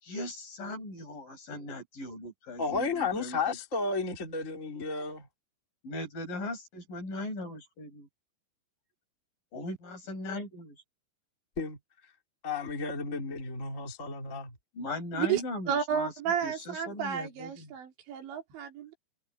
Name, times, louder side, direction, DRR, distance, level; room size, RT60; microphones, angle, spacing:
voice 1, 0.0-3.6 5.8-8.1 9.5-10.8 14.7-16.1 16.4-17.7, left 1 dB, 45° left, 8.1 m, -39 dB
voice 2, 2.6-5.3 11.6-11.8 12.4-14.5, left 4 dB, 20° left, 2.3 m, -33 dB
voice 3, 15.7-18.9, right 8 dB, 65° right, 5.3 m, -32 dB
omnidirectional pair, 5.7 m